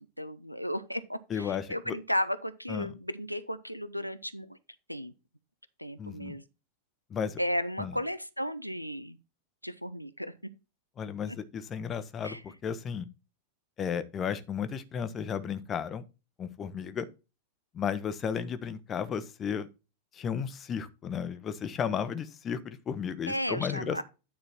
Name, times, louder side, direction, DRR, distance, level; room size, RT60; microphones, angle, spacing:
voice 1, 0.0-4.6 4.9-5.1 5.8-6.4 7.4-9.2 9.6-10.3 12.2-12.4 23.3-24.0, equal, 90° left, 0.5 m, -34 dB
voice 2, 1.3-2.0 2.7-2.9 6.0-6.4 7.1-7.4 7.8-8.0 11.0-13.1 13.8-16.0 16.4-17.1 17.7-19.7 20.1-24.0, left 7 dB, 25° left, 0.8 m, -34 dB
9.4 x 4.3 x 4.3 m
figure-of-eight pair, 90°, 0 cm